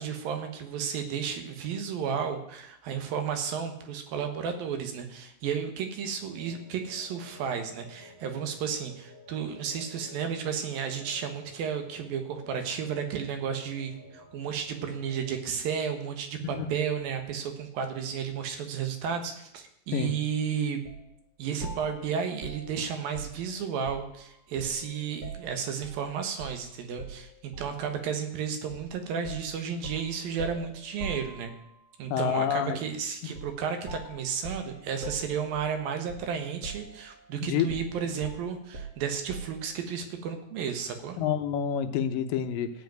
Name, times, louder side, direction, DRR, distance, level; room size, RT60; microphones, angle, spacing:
voice 1, 0.0-20.8 21.4-31.5 32.0-41.2, right 7 dB, 85° right, 6 dB, 3.2 m, -33 dB
sound 1, 6.2-15.3, left 1 dB, 10° right, 1.6 m, -52 dB
sound 2, 20.9-21.1 21.6-24.2 24.6-26.0 26.4-26.6 27.0-27.9 28.7-28.9 29.3-31.8 33.3-33.6 33.9-36.4 36.6-37.3 37.7-39.7, right 3 dB, 35° right, 1.2 m, -42 dB
voice 2, 32.1-32.8 37.4-37.7 41.2-42.7, left 9 dB, 80° left, 8 dB, 2.5 m, -28 dB
15.0 x 5.3 x 9.0 m, 0.78 s
omnidirectional pair, 4.0 m